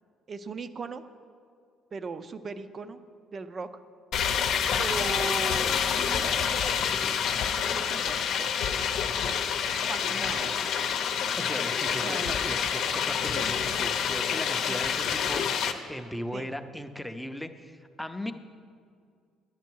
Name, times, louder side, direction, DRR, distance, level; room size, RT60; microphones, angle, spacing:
voice 1, 0.3-1.0 1.9-3.0 3.3-3.7 4.8-6.6 7.6-8.5 9.2-9.4 9.9-10.9 12.0-12.6 13.3-13.8 14.7-14.8 16.3-16.5, right 4 dB, 40° right, 12 dB, 0.5 m, -38 dB
sound 1, 4.1-15.7, left 7 dB, 65° left, 0.7 m, -28 dB
voice 2, 11.4-15.4 15.9-18.3, equal, 5° left, 7 dB, 0.6 m, -37 dB
10.0 x 9.5 x 4.6 m, 2.2 s
cardioid pair, 100°, 0 cm